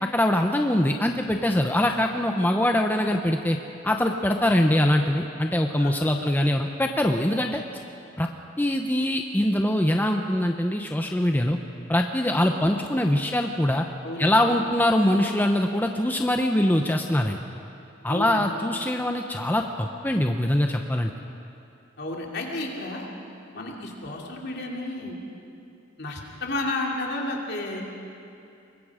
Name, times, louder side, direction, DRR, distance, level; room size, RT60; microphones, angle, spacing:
voice 1, 0.0-3.6 3.8-7.6 8.2-8.3 8.6-11.6 11.9-13.9 14.2-17.4 18.0-21.1, left 1 dB, 10° left, 4 dB, 0.7 m, -23 dB
voice 2, 5.8-6.2 14.0-14.6 18.1-18.5 22.0-23.1 23.5-25.2 26.0-27.8, left 2 dB, 55° left, -1 dB, 2.9 m, -32 dB
24.5 x 21.5 x 5.0 m, 2.7 s
head